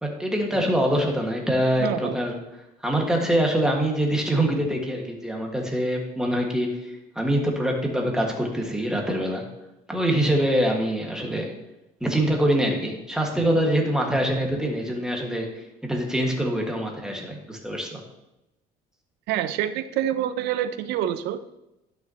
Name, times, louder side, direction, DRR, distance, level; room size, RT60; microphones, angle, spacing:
voice 1, 0.0-2.4 2.8-9.4 9.9-11.5 12.0-15.5 15.8-18.0, right 1 dB, 5° right, 0 dB, 1.7 m, -24 dB
voice 2, 1.8-2.2 19.3-21.4, right 11 dB, 90° right, 13 dB, 0.5 m, -26 dB
11.5 x 5.9 x 2.9 m, 0.92 s
cardioid pair, 110°, 17 cm